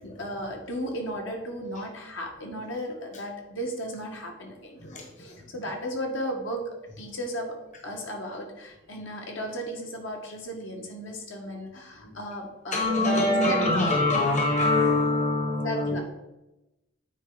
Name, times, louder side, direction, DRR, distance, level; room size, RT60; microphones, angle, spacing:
voice 1, 0.0-7.6 7.8-13.9 15.6-16.0, equal, 70° left, 1 dB, 1.7 m, -35 dB
voice 2, 4.8-5.5 11.4-11.5 11.9-12.2 12.7-16.0, left 2 dB, 35° left, 0 dB, 1.2 m, -25 dB
9.2 x 4.4 x 4.0 m, 0.96 s
head